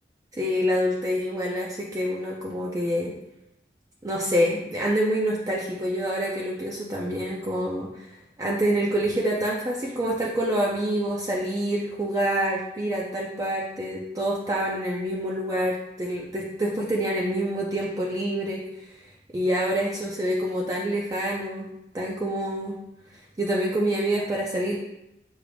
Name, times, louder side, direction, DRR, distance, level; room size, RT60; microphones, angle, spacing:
voice 1, 0.3-3.1 4.0-8.1 8.4-18.6 19.3-22.7 23.4-24.8, equal, 20° right, -3 dB, 0.4 m, -26 dB
6.1 x 2.4 x 3.3 m, 0.85 s
head